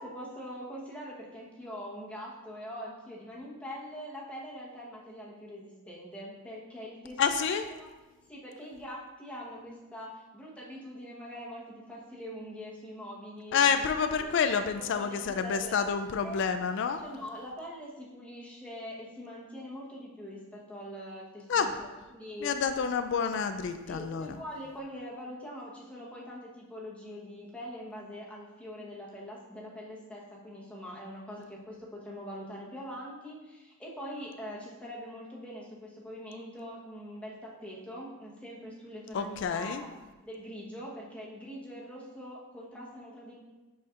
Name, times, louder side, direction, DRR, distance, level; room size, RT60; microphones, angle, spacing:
voice 1, 0.0-7.5 7.8-7.9 8.3-13.6 14.2-14.3 15.0-15.7 16.2-16.4 17.0-22.6 23.9-39.9 40.2-43.4, equal, 5° left, -5 dB, 1.1 m, -43 dB
voice 2, 7.2-7.7 13.5-17.0 21.5-21.7 22.4-24.4 39.1-39.8, left 6 dB, 55° left, 8 dB, 0.3 m, -28 dB
9.5 x 4.2 x 2.5 m, 1.2 s
head